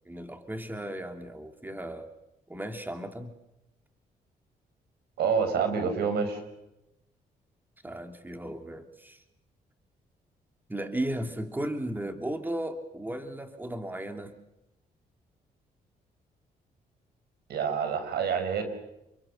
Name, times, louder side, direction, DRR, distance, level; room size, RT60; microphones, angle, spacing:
voice 1, 0.1-2.1 2.5-3.3 7.8-9.2 10.7-14.3, right 1 dB, 10° right, 6 dB, 3.0 m, -35 dB
voice 2, 5.2-6.4 17.5-18.6, right 6 dB, 85° right, 7 dB, 5.7 m, -27 dB
29.5 x 22.5 x 6.7 m, 0.90 s
cardioid pair, 75°, 16 cm